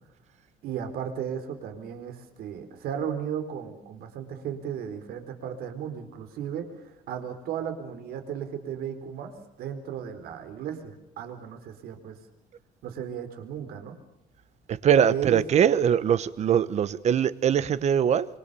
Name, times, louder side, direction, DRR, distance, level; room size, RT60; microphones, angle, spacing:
voice 1, 0.6-6.7 7.1-12.2 12.8-14.0 15.1-15.4, right 8 dB, 70° right, 4.5 m, -35 dB
voice 2, 14.8-18.3, right 8 dB, 45° right, 1.1 m, -22 dB
26.5 x 24.5 x 7.0 m
cardioid pair, 150°, 16 cm